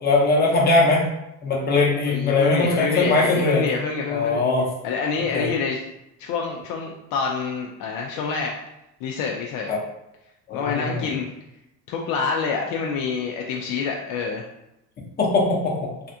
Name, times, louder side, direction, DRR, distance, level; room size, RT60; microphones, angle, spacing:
voice 1, 0.0-1.0 1.4-3.6 4.1-4.7 5.3-5.5 9.7-9.8 10.5-11.1 15.2-15.9, left 3 dB, 25° left, -3 dB, 0.7 m, -20 dB
voice 2, 2.1-4.4 4.8-5.8 6.2-8.5 9.0-9.7 10.5-11.3 11.9-14.5, left 5 dB, 60° left, 0 dB, 0.5 m, -27 dB
3.3 x 2.4 x 2.7 m, 0.87 s
cardioid pair, 140°, 39 cm